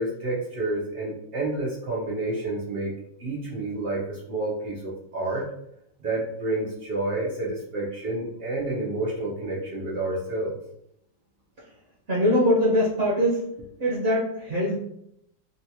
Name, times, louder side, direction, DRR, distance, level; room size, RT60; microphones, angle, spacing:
voice 1, 0.0-2.9 3.2-5.5 6.0-10.5, right 2 dB, 85° right, -5 dB, 0.5 m, -29 dB
voice 2, 12.1-13.4 13.8-14.8, equal, 50° right, -5 dB, 0.7 m, -22 dB
3.9 x 2.3 x 2.8 m, 0.74 s
omnidirectional pair, 2.1 m